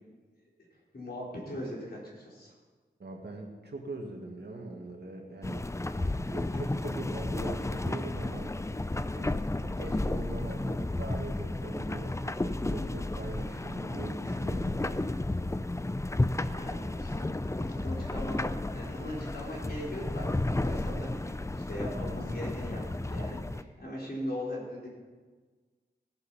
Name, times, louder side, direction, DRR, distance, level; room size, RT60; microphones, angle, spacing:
voice 1, 0.9-2.5 16.4-24.9, left 1 dB, 60° left, -5 dB, 4.4 m, -40 dB
voice 2, 3.0-5.7 6.3-8.5 9.1-9.4 9.7-15.1, right 2 dB, 70° right, 1 dB, 2.0 m, -42 dB
sound 1, 5.4-23.6, left 2 dB, 15° left, 0.5 m, -33 dB
17.0 x 8.1 x 5.7 m, 1.4 s
wide cardioid pair, 80°, 18 cm